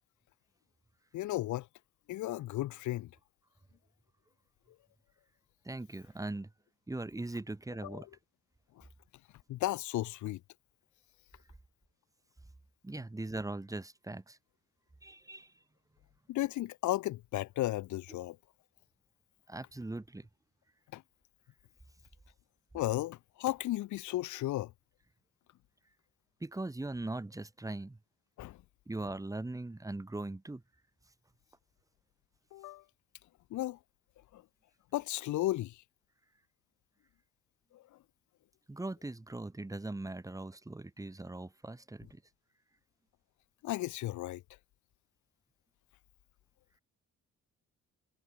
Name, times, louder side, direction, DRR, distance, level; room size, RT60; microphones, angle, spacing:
voice 1, 1.1-1.7 2.1-3.1 7.8-8.0 8.7-8.9 9.5-10.4 16.3-18.4 20.9-21.0 22.7-24.7 28.4-28.6 32.5-32.8 33.5-33.8 34.3-34.4 34.9-35.8 37.7-38.0 43.6-44.4, left 16 dB, 75° left, 0.7 m, -34 dB
voice 2, 5.6-6.5 6.9-8.1 12.8-14.4 15.0-15.5 19.5-20.3 26.4-28.0 28.9-30.6 38.7-42.2, right 2 dB, 10° right, 1.4 m, -40 dB
cardioid pair, 90°, 30 cm